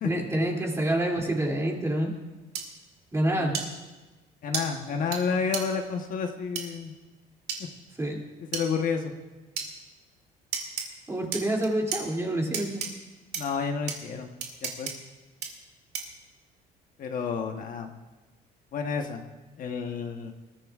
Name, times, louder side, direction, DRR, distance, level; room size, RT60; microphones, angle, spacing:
voice 1, 0.0-2.1 3.1-3.6 8.0-8.2 11.1-12.8, right 1 dB, 15° right, -1 dB, 2.7 m, -27 dB
sound 1, 2.5-2.6 3.5-3.7 4.5-4.6 5.1-5.2 5.5-5.6 6.5-6.6 7.5-7.6 8.5-8.6 9.6-9.7 10.5-10.8 11.3-12.0 12.5-12.9 13.3-13.4 13.9-14.0 14.4-14.9 15.4-15.5 15.9-16.2, right 7 dB, 70° right, 2.3 m, -31 dB
voice 2, 4.4-6.9 7.6-7.7 8.5-9.1 13.4-14.3 14.6-14.9 17.0-17.9 18.7-19.2 19.6-20.3, left 5 dB, 55° left, 4 dB, 1.1 m, -30 dB
20.5 x 14.5 x 2.4 m, 1.2 s
cardioid pair, 110°, 17 cm